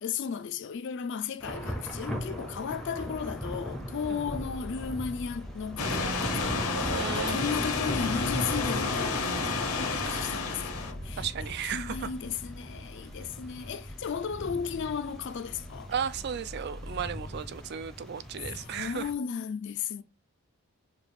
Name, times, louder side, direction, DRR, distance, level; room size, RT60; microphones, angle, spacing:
voice 1, 0.0-11.3 11.7-15.9 18.5-20.0, left 6 dB, 55° left, 0.4 m, -35 dB
Thunder / Rain, 1.4-19.1, equal, ahead, 0.6 m, -39 dB
sound 1, 4.2-17.4, left 1 dB, 90° right, 1.6 m, -46 dB
sound 2, 5.8-10.9, left 4 dB, 80° left, 0.8 m, -31 dB
voice 2, 6.9-7.5 10.0-10.3 11.2-12.1 15.9-19.1, right 7 dB, 45° right, 0.3 m, -35 dB
4.9 x 2.3 x 3.3 m
head